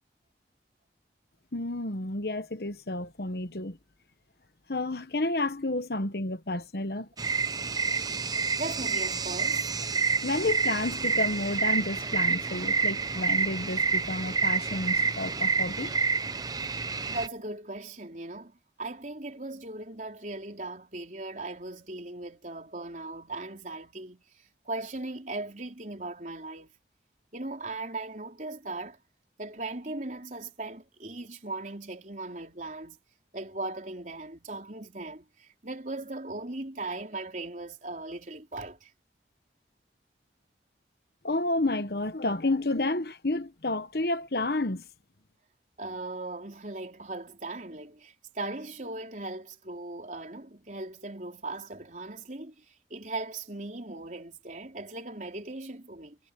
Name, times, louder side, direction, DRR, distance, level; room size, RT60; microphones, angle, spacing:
voice 1, 1.5-3.8 4.7-7.1 10.2-16.0 41.2-44.8, left 2 dB, 60° left, 1.2 m, -30 dB
sound 1, 7.2-17.3, right 5 dB, 20° right, 0.7 m, -28 dB
voice 2, 8.5-9.8 17.1-26.7 27.3-29.0 29.4-33.0 33.3-38.9 45.8-56.2, right 2 dB, 45° right, 4.1 m, -38 dB
head